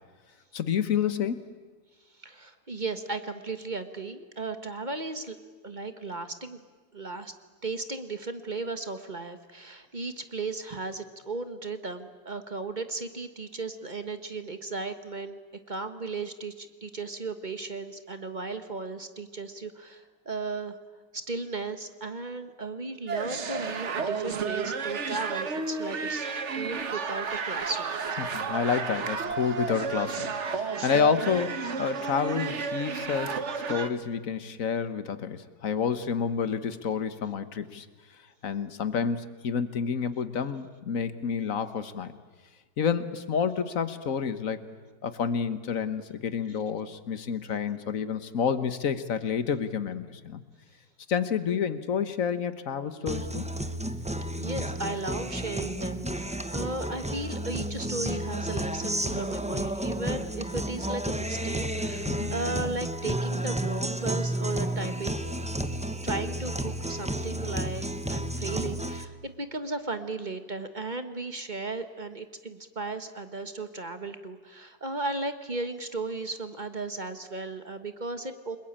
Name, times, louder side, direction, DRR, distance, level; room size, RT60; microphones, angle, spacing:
voice 1, 0.5-1.4 28.2-33.4 33.7-37.9 38.4-42.1 42.8-44.6 45.0-50.4 51.1-53.5 62.1-62.3, left 7 dB, 50° left, 12 dB, 1.5 m, -29 dB
voice 2, 2.2-5.4 5.6-6.6 6.9-7.3 7.6-15.4 15.7-20.8 21.1-28.2 54.4-65.2 66.0-78.6, right 3 dB, 30° right, 9 dB, 1.3 m, -35 dB
sound 1, 23.1-33.9, right 5 dB, 45° right, 1.4 m, -32 dB
Guitar, 53.1-69.0, right 1 dB, 5° right, 0.6 m, -32 dB
29.5 x 21.0 x 8.8 m, 1.4 s
omnidirectional pair, 1.9 m